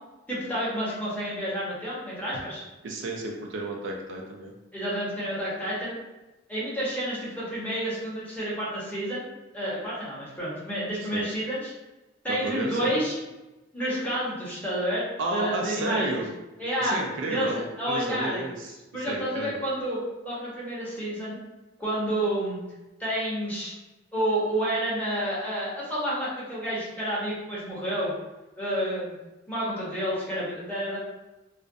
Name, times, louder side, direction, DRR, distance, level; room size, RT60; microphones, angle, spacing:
voice 1, 0.3-2.6 4.7-5.9 6.5-9.2 9.5-11.7 12.2-13.2 13.7-16.2 16.6-17.0 17.2-18.5 18.9-21.4 21.8-22.6 23.0-23.7 24.1-28.1 28.6-29.2 29.5-31.0, equal, 10° left, -8 dB, 0.8 m, -29 dB
voice 2, 2.8-4.5 11.1-11.2 12.3-13.0 15.2-16.3 16.8-18.7 19.1-19.6, right 2 dB, 85° right, 0 dB, 0.4 m, -32 dB
2.4 x 2.0 x 2.5 m, 1.1 s
head